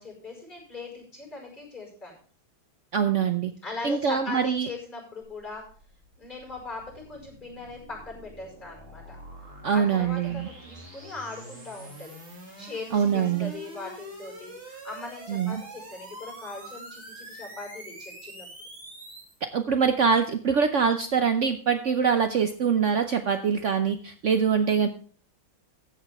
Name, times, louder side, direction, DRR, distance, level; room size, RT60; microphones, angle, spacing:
voice 1, 0.0-2.1 3.6-5.6 6.2-9.2 9.7-12.1 12.6-18.5, left 3 dB, 20° left, 0 dB, 5.4 m, -40 dB
voice 2, 2.9-3.5 3.8-4.7 9.6-10.5 12.9-13.5 15.3-15.6 19.4-24.9, right 6 dB, 75° right, 8 dB, 0.6 m, -24 dB
sound 1, 5.2-19.4, right 1 dB, 30° right, 2.9 m, -45 dB
14.5 x 8.4 x 3.5 m, 0.43 s
omnidirectional pair, 2.3 m